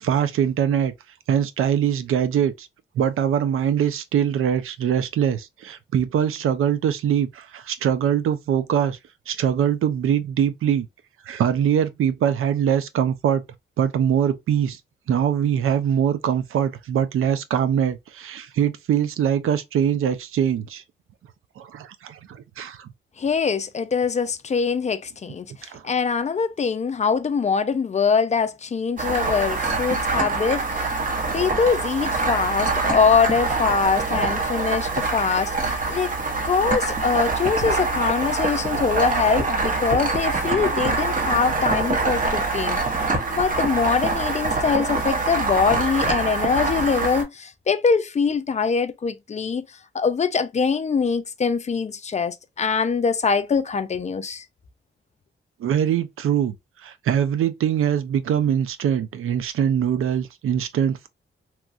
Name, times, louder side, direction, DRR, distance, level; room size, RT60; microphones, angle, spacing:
voice 1, 0.0-0.9 1.3-2.7 3.0-9.0 9.3-10.9 11.3-13.4 13.8-14.8 15.1-20.8 21.6-22.9 25.7-25.8 55.6-56.5 56.8-61.1, right 9 dB, 80° right, 0.4 m, -22 dB
voice 2, 23.2-31.0 31.3-36.1 36.4-42.8 43.3-49.6 49.9-54.4, left 5 dB, 35° left, 0.4 m, -23 dB
sound 1, 29.0-47.2, right 3 dB, 40° right, 0.9 m, -24 dB
3.0 x 2.3 x 2.4 m
cardioid pair, 80°, 21 cm